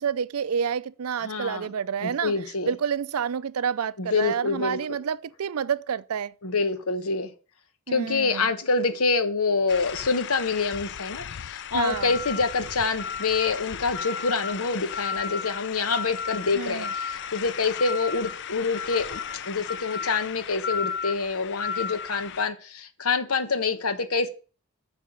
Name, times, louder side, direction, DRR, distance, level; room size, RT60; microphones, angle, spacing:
voice 1, 0.0-2.4 2.7-6.3 7.9-8.5 11.7-12.1 16.5-16.9, right 7 dB, 85° right, 0.5 m, -29 dB
voice 2, 1.2-1.7 2.0-2.7 4.0-4.8 6.4-7.3 7.9-19.2 19.5-24.3, left 4 dB, 80° left, 1.1 m, -26 dB
sound 1, 9.7-22.4, left 7 dB, 55° left, 0.4 m, -34 dB
8.8 x 5.6 x 6.4 m
head